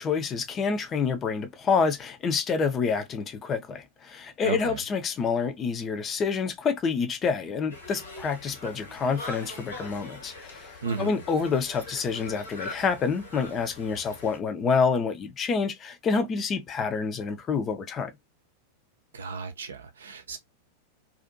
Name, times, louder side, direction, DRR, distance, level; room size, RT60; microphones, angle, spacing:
voice 1, 0.0-18.1, left 5 dB, 25° left, 0.5 m, -28 dB
voice 2, 4.4-4.8 10.8-11.2 19.1-20.4, right 5 dB, 65° right, 0.5 m, -34 dB
Conversation, 7.7-14.4, left 2 dB, 80° left, 1.3 m, -42 dB
2.5 x 2.5 x 2.5 m
figure-of-eight pair, 90°, 0 cm